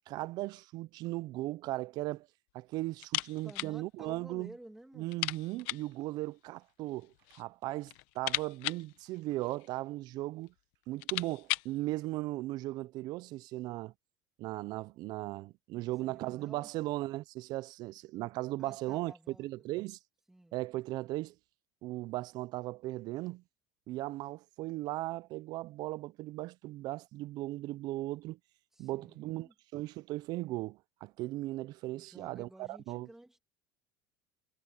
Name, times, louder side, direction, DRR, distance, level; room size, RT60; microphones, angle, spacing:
voice 1, 0.1-2.3 2.5-4.5 5.0-10.5 10.9-13.9 14.4-19.1 19.4-20.0 20.5-21.3 21.8-23.4 23.9-28.4 28.8-33.1, right 18 dB, 50° right, 0.5 m, -37 dB
sound 1, 3.0-3.8 4.0-4.1 4.5-4.6 5.1-6.0 6.9-7.5 7.8-9.8 10.5-10.6 10.8-11.8, left 21 dB, 70° left, 1.1 m, -37 dB
voice 2, 3.4-5.2 15.8-16.7 18.6-19.7 20.3-20.6 28.7-29.5 31.9-33.4, right 1 dB, 5° right, 2.6 m, -53 dB
cardioid pair, 145°, 9 cm